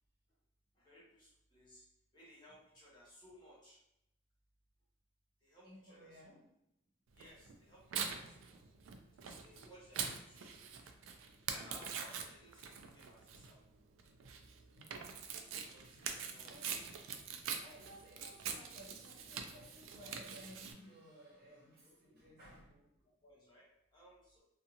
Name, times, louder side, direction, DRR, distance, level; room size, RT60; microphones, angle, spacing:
voice 1, 0.7-1.9 2.1-3.8 5.4-6.3 7.1-8.6 9.2-11.1 11.5-13.6 15.7-16.7 21.8-22.2 23.0-24.4, equal, 20° left, -7 dB, 0.9 m, -61 dB
voice 2, 5.6-6.5 14.7-15.1 15.9-17.3 17.6-22.8, equal, 50° right, -4 dB, 0.9 m, -58 dB
Tearing, 7.2-20.7, right 6 dB, 75° right, 0.3 m, -44 dB
2.5 x 2.4 x 2.8 m, 0.80 s
head